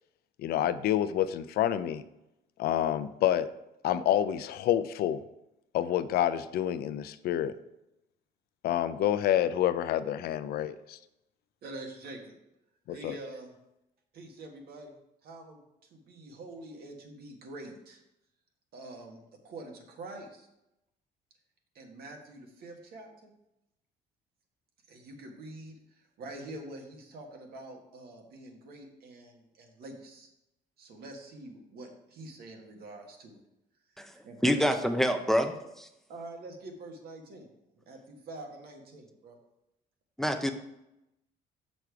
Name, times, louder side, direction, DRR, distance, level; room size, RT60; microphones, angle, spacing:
voice 1, 0.4-2.0 2.6-3.5 3.8-5.2 5.7-7.5 8.6-11.0 12.9-13.1, left 11 dB, 65° left, 13 dB, 0.5 m, -28 dB
voice 2, 11.6-12.3 12.9-13.5 14.1-14.9 15.2-18.0 18.7-20.5 21.8-23.3 24.9-30.3 30.8-33.4 34.2-34.7 36.1-37.5 37.8-39.4, right 2 dB, 65° right, 2 dB, 1.7 m, -46 dB
voice 3, 34.4-35.9 40.2-40.5, equal, ahead, 7 dB, 0.6 m, -27 dB
6.6 x 6.1 x 4.7 m, 0.89 s
cardioid pair, 110°, 17 cm